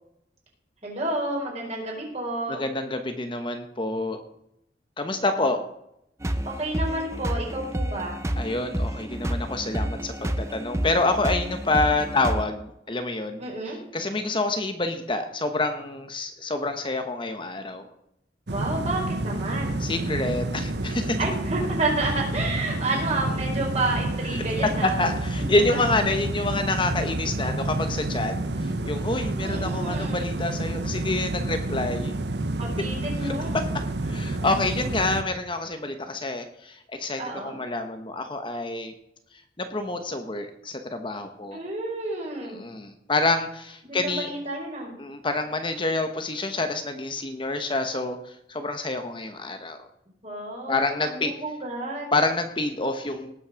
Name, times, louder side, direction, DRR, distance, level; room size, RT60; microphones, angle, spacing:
voice 1, 0.8-2.6 5.1-5.2 6.4-8.2 13.4-13.8 18.5-19.8 21.2-25.0 29.4-30.2 32.6-33.6 37.2-37.5 41.5-42.6 43.9-44.9 50.2-52.1, right 2 dB, 40° right, -1 dB, 4.7 m, -30 dB
voice 2, 2.5-4.2 5.0-5.6 8.3-13.4 13.9-17.8 19.8-21.2 24.8-32.1 33.2-33.6 34.0-38.9 39.6-41.6 42.4-44.3 45.0-49.8 50.7-51.3 52.1-53.3, left 2 dB, 30° left, 6 dB, 1.0 m, -27 dB
sound 1, 6.2-12.4, right 1 dB, 15° right, 0.8 m, -29 dB
sound 2, 18.5-35.2, right 2 dB, 75° right, 1.0 m, -29 dB
18.5 x 6.2 x 6.3 m, 0.78 s
head